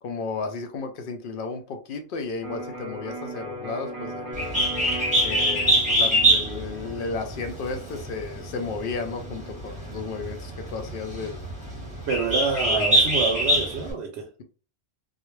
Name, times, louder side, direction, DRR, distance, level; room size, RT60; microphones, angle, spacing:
voice 1, 0.0-4.5 5.2-11.5 12.6-13.1, left 4 dB, 60° left, 0.6 m, -33 dB
Electric guitar, 2.4-10.2, equal, 35° right, 0.8 m, -38 dB
Bird, 4.3-13.9, right 1 dB, 5° right, 1.0 m, -24 dB
voice 2, 12.1-14.3, right 5 dB, 70° right, 0.8 m, -27 dB
2.4 x 2.0 x 3.0 m
omnidirectional pair, 1.2 m